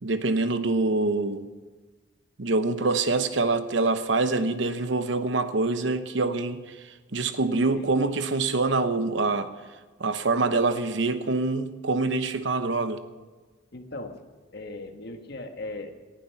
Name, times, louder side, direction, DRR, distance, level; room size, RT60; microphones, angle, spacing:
voice 1, 0.0-1.5 2.4-9.5 10.0-13.0, right 3 dB, 70° right, 1.0 m, -25 dB
voice 2, 13.7-14.2 14.5-15.9, left 2 dB, 60° left, 1.5 m, -38 dB
18.5 x 11.5 x 5.8 m
head